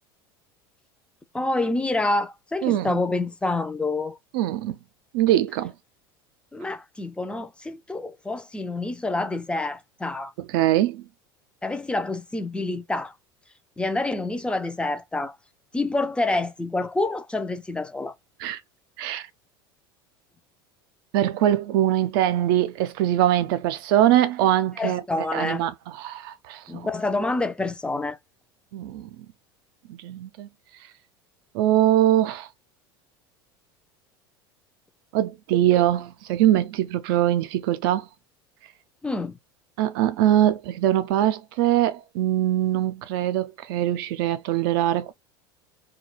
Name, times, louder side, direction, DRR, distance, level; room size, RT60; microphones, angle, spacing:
voice 1, 1.3-4.2 6.5-10.3 11.6-13.1 13.8-15.4 15.7-18.1 24.8-25.6 26.7-28.2 39.0-39.4, left 2 dB, 10° left, 0.4 m, -27 dB
voice 2, 2.6-3.0 4.3-4.8 5.1-5.7 10.4-11.0 18.4-18.6 19.0-19.3 21.1-25.0 25.3-25.7 26.0-26.9 28.7-29.1 29.9-30.5 31.5-32.5 35.1-38.1 39.8-45.1, right 12 dB, 70° right, 0.5 m, -22 dB
2.3 x 2.2 x 3.0 m
hypercardioid pair, 85°, 12 cm